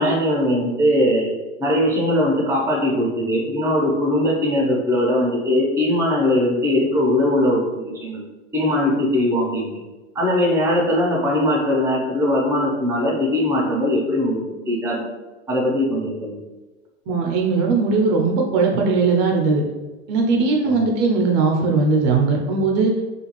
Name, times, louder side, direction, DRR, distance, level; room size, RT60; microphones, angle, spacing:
voice 1, 0.0-1.3 1.6-8.2 8.5-9.7 10.1-15.0 15.5-16.4 20.7-20.8, left 1 dB, 5° right, -3 dB, 0.6 m, -20 dB
voice 2, 17.1-19.6 20.1-22.9, right 4 dB, 55° right, 1 dB, 0.6 m, -19 dB
2.5 x 2.3 x 3.0 m, 1.2 s
hypercardioid pair, 105°, 37 cm